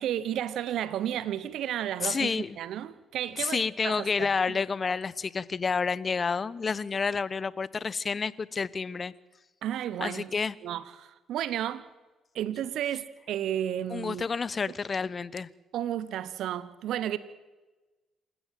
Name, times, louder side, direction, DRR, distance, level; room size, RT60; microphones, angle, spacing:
voice 1, 0.0-4.3 9.6-10.3 10.6-11.8 12.3-14.2 15.7-17.2, right 11 dB, 70° right, 1.1 m, -32 dB
voice 2, 2.0-2.6 3.4-9.1 10.0-10.5 13.9-15.5, left 5 dB, 40° left, 1.0 m, -29 dB
27.5 x 15.5 x 7.7 m
hypercardioid pair, 55°, 0 cm